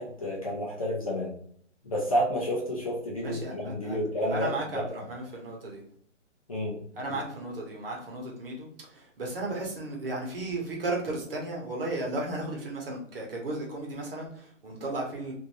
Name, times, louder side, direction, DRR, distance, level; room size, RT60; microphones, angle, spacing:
voice 1, 0.0-1.4 1.8-4.8 6.5-6.8, equal, 30° left, -4 dB, 0.5 m, -30 dB
voice 2, 3.2-4.0 4.3-5.8 7.0-15.3, right 2 dB, 50° right, -1 dB, 1.1 m, -35 dB
3.0 x 2.6 x 2.6 m, 0.63 s
hypercardioid pair, 165°, 37 cm